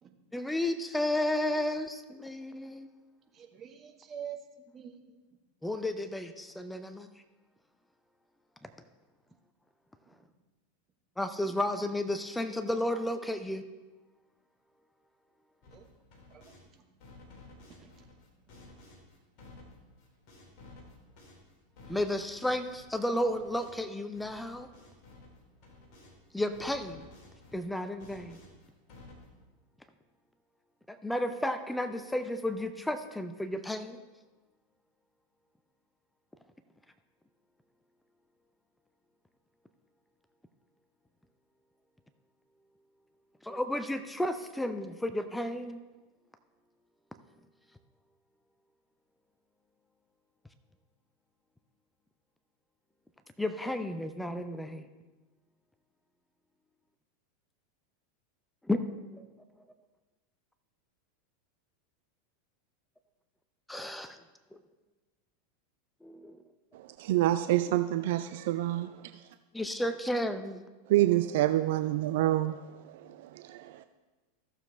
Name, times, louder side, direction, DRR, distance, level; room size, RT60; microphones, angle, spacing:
voice 1, 0.3-2.9 5.6-7.1 11.2-13.6 21.9-24.7 26.3-27.0 27.5-28.4 30.9-34.0 43.4-45.8 53.4-54.9 58.7-59.2 63.7-64.2 66.0-66.4 69.5-70.6, left 1 dB, 5° left, 9 dB, 0.5 m, -32 dB
voice 2, 3.3-5.2 9.3-9.4 10.1-10.2 15.7-15.9 16.3-16.8 17.7-18.1, right 8 dB, 30° right, 5 dB, 1.1 m, -47 dB
sound 1, 15.6-16.7 17.0-26.2 26.5-29.4, left 2 dB, 45° left, 2.4 m, -54 dB
voice 3, 66.7-69.2 70.9-73.9, right 14 dB, 55° right, 11 dB, 0.3 m, -28 dB
14.5 x 6.9 x 3.2 m, 1.2 s
figure-of-eight pair, 85°, 0 cm